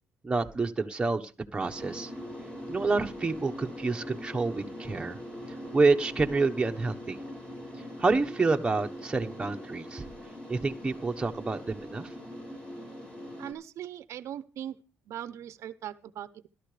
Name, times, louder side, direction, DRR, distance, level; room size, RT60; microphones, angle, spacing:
voice 1, 0.2-2.1 2.7-5.2 5.7-7.2 8.0-10.0 10.5-12.1, right 3 dB, 20° right, 3 dB, 1.2 m, -28 dB
sound 1, 1.6-13.5, equal, 20° left, 5.1 m, -42 dB
voice 2, 13.4-14.8 15.1-16.5, right 11 dB, 70° right, 14 dB, 0.8 m, -40 dB
17.5 x 12.5 x 3.4 m, 0.34 s
cardioid pair, 105°, 5 cm